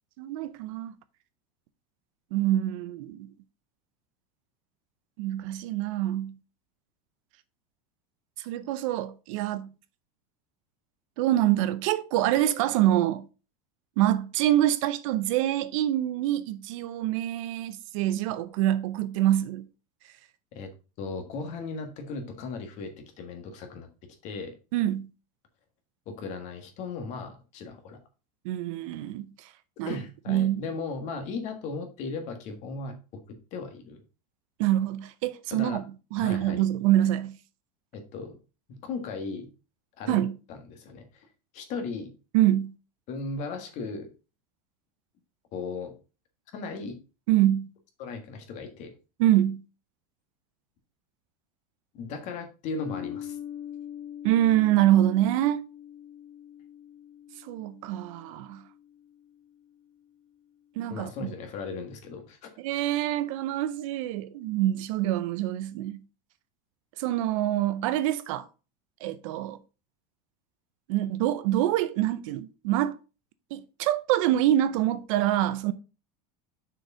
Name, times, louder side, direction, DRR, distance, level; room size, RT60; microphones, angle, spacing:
voice 1, 0.2-0.9 2.3-3.3 5.2-6.4 8.4-9.7 11.2-13.2 14.0-19.7 24.7-25.1 28.4-29.5 29.8-30.0 30.3-30.6 34.6-35.8 36.1-37.4 40.1-40.4 42.3-42.7 47.3-47.7 49.2-49.6 54.2-55.6 57.4-58.6 60.8-61.3 62.6-66.0 67.0-68.5 69.0-69.6 70.9-73.0 73.5-75.7, right 13 dB, 60° right, 0.7 m, -25 dB
voice 2, 21.0-23.9 24.2-24.6 26.1-28.0 29.8-32.9 33.3-34.0 35.5-35.8 36.2-36.6 37.9-38.4 38.7-39.5 40.0-41.3 41.5-42.1 43.1-44.1 45.5-45.9 46.5-47.0 48.0-48.9 51.9-53.4 60.9-62.5, left 4 dB, 40° left, 1.6 m, -37 dB
sound 1, 52.8-59.5, left 10 dB, 65° left, 2.1 m, -43 dB
6.4 x 4.7 x 4.9 m
supercardioid pair, 165°, 19 cm